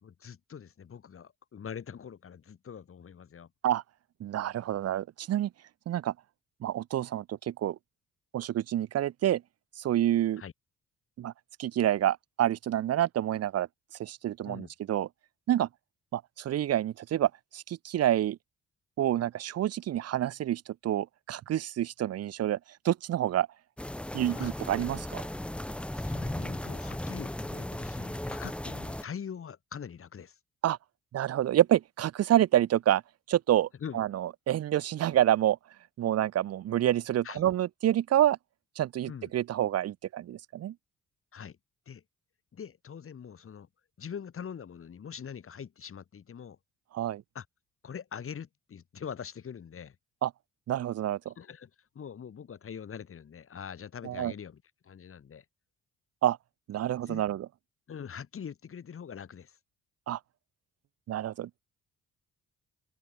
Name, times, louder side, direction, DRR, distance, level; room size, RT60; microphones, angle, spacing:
voice 1, 0.0-3.5 10.4-10.5 14.4-14.7 24.4-24.5 25.9-30.4 33.8-34.0 37.2-37.5 39.0-39.3 41.3-41.6 41.9-42.0 42.5-43.7 44.0-46.6 47.3-47.5 47.8-50.0 51.3-55.4 57.1-57.2 57.9-59.6, left 7 dB, 45° left, 2.4 m, -43 dB
voice 2, 4.2-5.5 5.9-6.1 6.6-7.8 8.3-9.4 9.8-10.4 11.2-11.3 11.6-13.7 14.0-15.1 15.5-15.7 16.1-18.4 19.0-22.6 22.8-23.5 24.1-25.2 30.6-30.8 31.1-33.0 33.3-33.7 33.9-35.6 36.0-38.4 38.8-40.7 46.9-47.2 50.2-50.3 50.7-51.3 54.0-54.3 56.2-56.4 56.7-57.5 60.1-60.2 61.1-61.6, right 12 dB, 55° right, 0.7 m, -28 dB
sound 1, 23.8-29.0, left 1 dB, 5° left, 0.6 m, -36 dB
cardioid pair, 90°, 30 cm